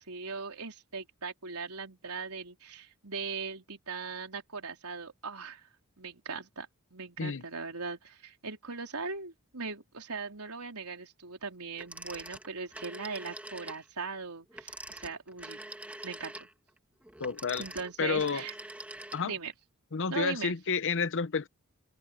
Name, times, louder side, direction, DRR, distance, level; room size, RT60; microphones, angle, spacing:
voice 1, 0.0-5.7 6.0-15.6 16.0-16.5 17.6-18.5 19.2-19.5 20.1-20.5, right 4 dB, 85° right, 4.1 m, -39 dB
Telephone, 11.8-13.8 14.5-19.5, right 1 dB, 5° right, 1.9 m, -45 dB
voice 2, 17.2-17.6 18.0-18.4 19.1-19.3 19.9-21.5, left 5 dB, 60° left, 0.8 m, -30 dB
open air
head